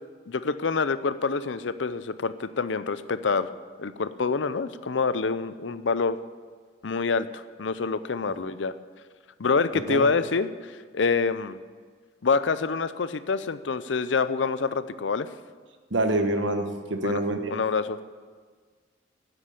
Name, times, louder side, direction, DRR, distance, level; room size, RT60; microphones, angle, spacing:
voice 1, 0.3-3.5 3.8-6.2 6.8-8.7 9.4-10.5 10.9-11.6 12.2-15.3 17.0-17.2 17.5-18.0, left 4 dB, 75° left, 13 dB, 0.6 m, -26 dB
voice 2, 15.9-17.5, right 2 dB, 75° right, 6 dB, 1.3 m, -26 dB
10.0 x 7.9 x 8.6 m, 1.5 s
head